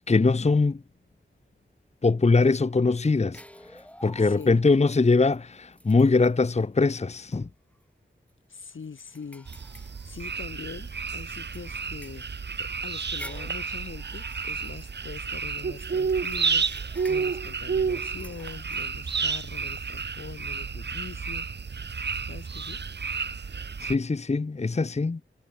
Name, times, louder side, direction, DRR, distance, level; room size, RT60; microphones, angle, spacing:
voice 1, 0.1-0.8 2.0-3.4 4.0-7.5 23.8-25.2, left 3 dB, 35° left, 0.9 m, -22 dB
sound 1, 3.3-4.8 5.3-5.4 5.7-6.6 7.2-7.4 7.7-7.8 8.3-10.7 11.2-15.6 16.1-18.9, equal, 5° left, 5.5 m, -50 dB
voice 2, 4.2-4.7 8.5-21.5 22.2-22.8, left 5 dB, 75° left, 3.7 m, -43 dB
sound 2, 9.5-24.0, right 5 dB, 60° right, 1.2 m, -31 dB
cardioid pair, 55°, 20 cm